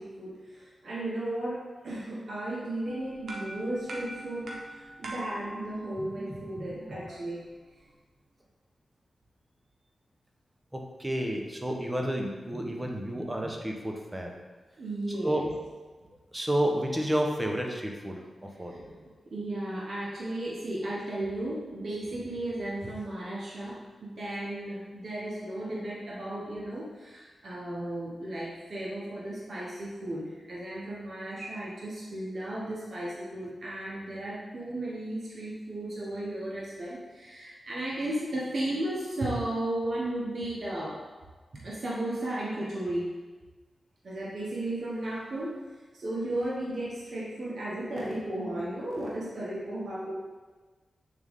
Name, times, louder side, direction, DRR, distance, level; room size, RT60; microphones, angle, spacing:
voice 1, 0.0-7.4 12.5-12.9 13.1-13.5 14.8-15.5 18.7-41.0 41.5-43.1 44.0-45.6 45.9-50.1, right 1 dB, 60° right, -5 dB, 1.1 m, -35 dB
sound 1, 2.8-8.1, right 1 dB, 80° right, 1.0 m, -44 dB
voice 2, 10.7-14.3 15.2-15.4 16.3-18.7, right 1 dB, 15° right, 1 dB, 1.1 m, -30 dB
8.0 x 3.6 x 3.6 m, 1.3 s
cardioid pair, 50°, 0 cm